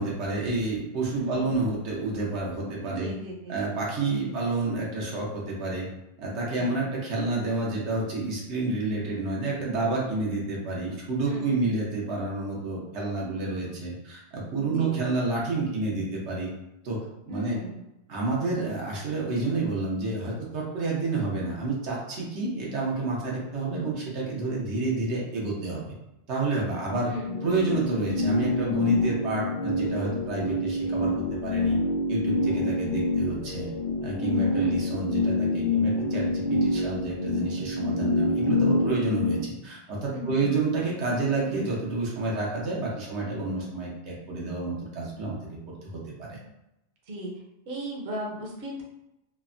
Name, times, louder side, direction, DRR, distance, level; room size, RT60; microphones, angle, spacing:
voice 1, 0.0-3.1 3.5-5.9 6.2-16.5 16.8-17.6 18.1-25.8 26.3-27.1 27.4-31.8 32.1-33.7 34.0-46.4, right 3 dB, 90° right, -3 dB, 1.1 m, -29 dB
voice 2, 1.1-1.6 3.0-3.6 4.3-4.4 6.5-6.9 11.3-11.7 14.8-14.9 17.3-17.8 27.1-27.4 34.6-34.9 40.1-40.5 46.3-46.4 47.1-47.3 47.7-48.8, right 1 dB, 60° right, -2 dB, 0.8 m, -37 dB
sound 1, 26.9-39.4, left 2 dB, 90° left, 0.9 m, -27 dB
3.3 x 2.0 x 2.4 m, 0.87 s
omnidirectional pair, 1.1 m